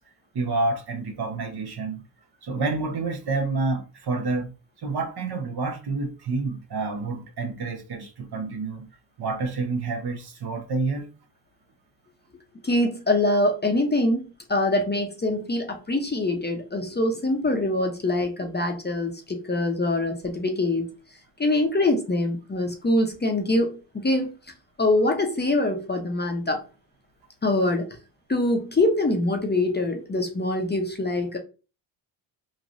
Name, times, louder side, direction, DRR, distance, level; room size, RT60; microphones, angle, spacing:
voice 1, 0.3-2.0 2.4-4.5 4.8-8.9 9.2-11.1, right 3 dB, 50° right, 0.8 m, -28 dB
voice 2, 12.6-14.2 14.5-20.9 21.4-24.3 24.8-26.6 27.4-27.9 28.3-31.4, left 2 dB, 20° left, 0.6 m, -24 dB
3.0 x 2.5 x 2.5 m
supercardioid pair, 55°, 49 cm